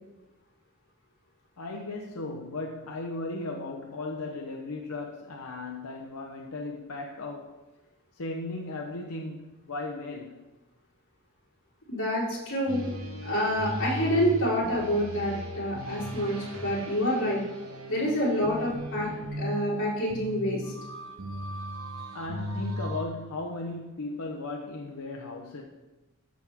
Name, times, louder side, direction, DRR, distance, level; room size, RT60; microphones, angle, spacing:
voice 1, 1.6-7.6 8.1-10.4 22.1-25.6, left 2 dB, 85° left, 0.9 m, -36 dB
voice 2, 11.9-12.9 13.2-16.4 16.6-17.4 17.9-19.1 19.4-20.6, equal, 60° left, 3.9 m, -27 dB
sound 1, 12.7-23.0, equal, 75° right, 1.7 m, -37 dB
14.0 x 6.2 x 3.6 m
head